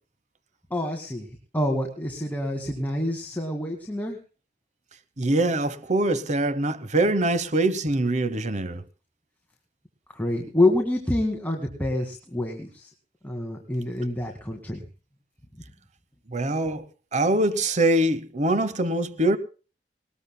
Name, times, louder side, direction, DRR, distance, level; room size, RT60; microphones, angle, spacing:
voice 1, 0.7-4.2 10.1-12.9 13.2-14.9, left 1 dB, 10° left, 2.0 m, -27 dB
voice 2, 5.2-8.8 16.3-16.8 17.1-19.4, right 1 dB, 40° right, 1.0 m, -23 dB
20.0 x 20.0 x 2.2 m
head